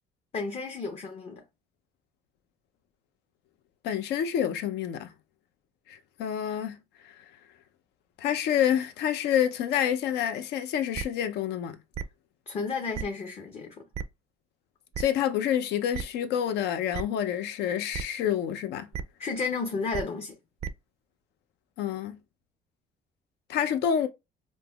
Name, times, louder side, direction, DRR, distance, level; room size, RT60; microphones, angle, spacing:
voice 1, 0.3-1.4 12.5-13.8 19.2-20.4, left 4 dB, 35° left, 0.6 m, -32 dB
voice 2, 3.8-5.1 5.9-6.8 7.0-7.2 8.2-11.8 15.0-18.9 21.8-22.2 23.5-24.1, left 9 dB, 80° left, 0.6 m, -28 dB
sound 1, 10.9-11.0 11.9-12.0 12.9-13.0 13.9-14.0 14.9-15.0 15.9-16.0 16.9-17.0 17.9-18.0 18.9-19.0 19.9-20.0 20.6-20.7, right 7 dB, 40° right, 0.4 m, -32 dB
5.2 x 2.0 x 2.3 m
cardioid pair, 110°, 17 cm